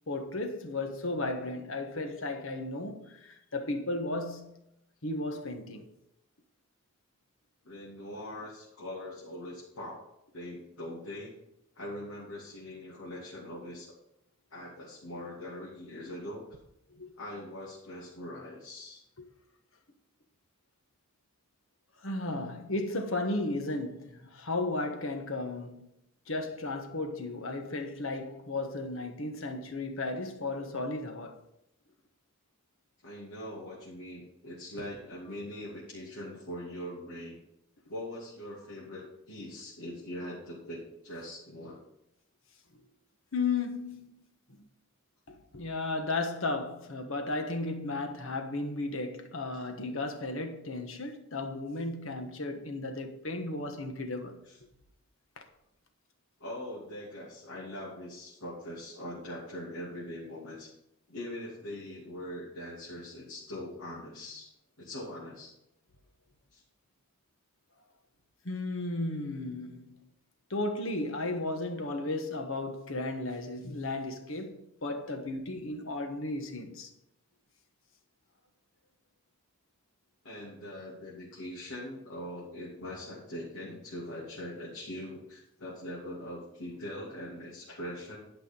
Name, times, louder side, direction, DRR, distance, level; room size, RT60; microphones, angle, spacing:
voice 1, 0.1-4.5 5.0-5.9 17.0-17.1 22.0-25.9 26.3-31.3 43.3-44.1 45.5-54.4 68.4-70.0 70.5-76.9, left 2 dB, 70° left, 1.4 m, -34 dB
voice 2, 7.6-10.0 10.3-11.3 11.7-13.9 14.5-16.4 17.2-19.0 33.0-37.4 37.9-41.8 49.4-49.6 54.4-54.6 56.4-60.7 61.1-64.5 64.8-65.5 66.5-66.6 80.2-88.2, left 1 dB, 90° left, 2.8 m, -42 dB
11.5 x 5.9 x 5.5 m
head